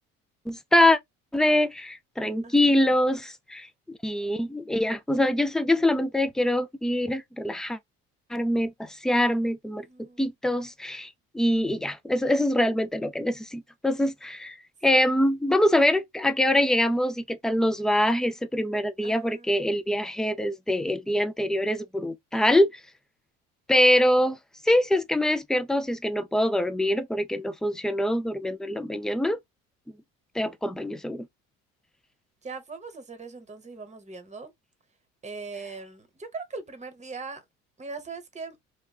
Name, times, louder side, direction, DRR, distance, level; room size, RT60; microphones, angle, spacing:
voice 1, 0.5-1.0 1.3-7.8 8.3-9.8 10.2-14.6 14.8-22.7 23.7-24.4 24.6-29.4 30.4-31.3, left 1 dB, ahead, 0.4 m, -24 dB
voice 2, 2.4-3.0 9.8-10.2 19.0-19.7 32.4-34.5 35.2-37.4 37.8-38.6, right 4 dB, 20° right, 1.0 m, -40 dB
3.0 x 2.2 x 2.3 m
supercardioid pair, 85°, 31 cm